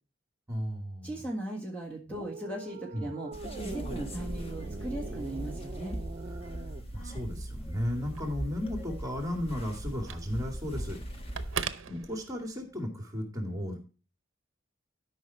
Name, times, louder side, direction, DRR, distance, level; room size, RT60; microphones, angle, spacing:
voice 1, 0.5-1.2 2.9-3.1 6.9-11.0 11.9-13.8, left 1 dB, 20° right, 4 dB, 2.4 m, -34 dB
voice 2, 1.0-3.3 3.6-6.0, right 1 dB, 5° left, 0 dB, 1.8 m, -38 dB
sound 1, 2.1-6.9, right 3 dB, 35° right, 0.4 m, -43 dB
sound 2, 3.3-11.6, right 1 dB, 30° left, 1.6 m, -39 dB
Telephone, 8.0-12.7, right 7 dB, 80° right, 0.8 m, -42 dB
12.5 x 5.8 x 4.3 m, 0.35 s
head